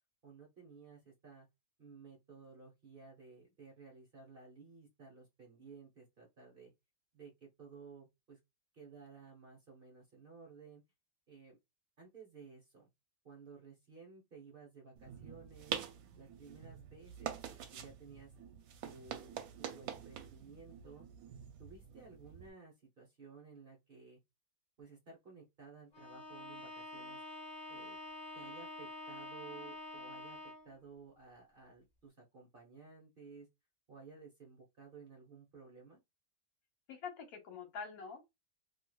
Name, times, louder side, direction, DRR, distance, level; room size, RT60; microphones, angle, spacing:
voice 1, 0.2-1.5 1.8-6.7 7.1-8.4 8.7-10.8 11.3-11.6 12.0-12.9 13.2-15.8 16.2-18.3 18.8-21.1 21.6-24.2 24.8-27.2 27.7-28.0 28.3-33.5 33.9-36.0, right 5 dB, 45° right, 0.8 m, -55 dB
sound 1, 15.0-22.5, right 8 dB, 75° right, 1.0 m, -46 dB
Bowed string instrument, 25.9-30.8, left 2 dB, 35° left, 0.8 m, -47 dB
voice 2, 36.9-38.3, left 6 dB, 70° left, 1.3 m, -46 dB
3.0 x 2.6 x 2.2 m
omnidirectional pair, 1.6 m